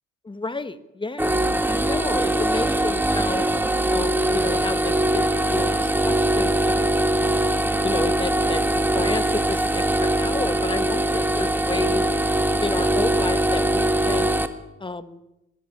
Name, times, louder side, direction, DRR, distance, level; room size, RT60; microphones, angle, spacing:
voice 1, 0.2-3.5 3.9-6.7 7.2-7.5 7.8-12.0 12.6-14.4 14.8-15.2, left 3 dB, 15° left, 12 dB, 1.2 m, -31 dB
sound 1, 1.2-14.5, right 1 dB, 5° right, 1.5 m, -22 dB
22.5 x 14.0 x 8.6 m, 0.95 s
cardioid pair, 90°, 30 cm